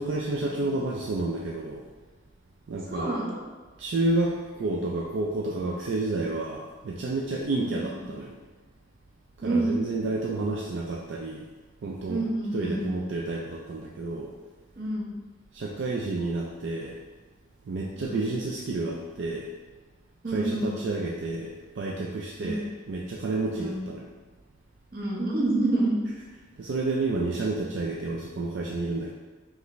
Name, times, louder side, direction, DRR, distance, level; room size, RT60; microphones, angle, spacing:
voice 1, 0.0-1.8 2.7-3.1 3.8-8.4 9.4-11.5 11.8-12.2 12.5-14.3 15.5-17.0 17.7-19.5 20.3-24.1 26.6-29.1, right 2 dB, 70° right, -2 dB, 0.4 m, -30 dB
voice 2, 2.9-3.4 7.6-8.1 9.4-9.8 12.1-12.8 14.8-15.1 17.9-18.3 20.2-20.7 22.4-22.7 23.6-23.8 24.9-25.9, right 2 dB, 50° right, -4 dB, 0.9 m, -28 dB
5.2 x 2.5 x 3.1 m, 1.3 s
head